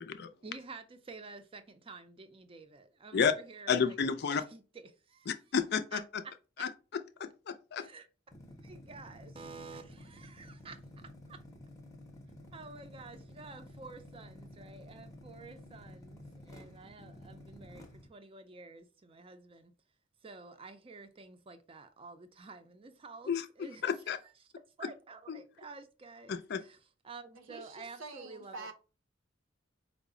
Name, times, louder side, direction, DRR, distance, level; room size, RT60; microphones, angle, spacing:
voice 1, 0.4-4.0 4.3-5.3 5.9-6.7 7.8-8.1 8.6-11.4 12.5-19.7 20.2-24.3 24.8-26.8 27.0-28.7, right 4 dB, 30° right, 0.5 m, -50 dB
voice 2, 3.7-4.4 5.3-6.0 6.6-6.7 7.2-7.9 23.3-23.5 23.8-24.2 25.3-25.4 26.3-26.6, left 6 dB, 55° left, 0.4 m, -31 dB
sound 1, 8.3-18.1, left 1 dB, 15° left, 0.6 m, -52 dB
voice 3, 27.4-28.7, right 3 dB, 85° right, 0.7 m, -46 dB
4.7 x 2.0 x 3.6 m
head